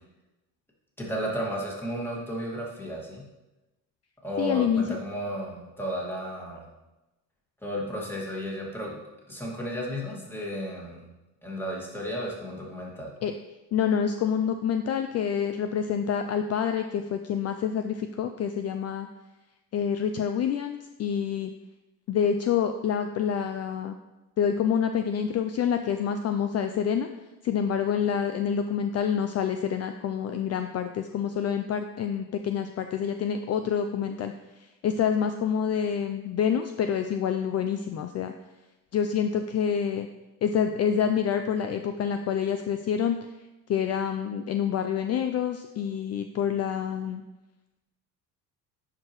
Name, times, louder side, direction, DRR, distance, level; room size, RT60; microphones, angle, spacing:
voice 1, 1.0-3.3 4.2-6.7 7.6-9.0 9.3-11.1 11.4-13.1, equal, 5° left, -3 dB, 2.0 m, -33 dB
voice 2, 4.4-4.8 13.2-13.3 13.7-19.1 19.7-21.5 22.1-24.0 24.4-27.1 27.4-34.3 34.6-38.3 38.9-40.1 40.4-43.2 43.7-47.2, left 8 dB, 40° left, 7 dB, 0.4 m, -27 dB
10.5 x 4.8 x 3.0 m, 1.0 s
cardioid pair, 110°, 39 cm